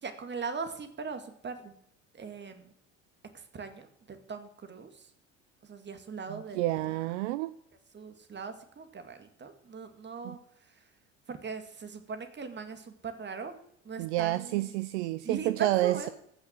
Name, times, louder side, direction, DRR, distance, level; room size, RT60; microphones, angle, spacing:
voice 1, 0.0-1.7 2.1-2.7 3.3-5.1 5.6-6.9 7.9-10.4 11.3-13.6 13.8-14.8 15.2-16.1, right 5 dB, 30° right, 8 dB, 2.2 m, -40 dB
voice 2, 6.3-7.5 10.2-10.4 14.0-16.1, right 16 dB, 65° right, 14 dB, 0.7 m, -29 dB
15.0 x 6.6 x 7.5 m, 0.73 s
figure-of-eight pair, 60°, 37 cm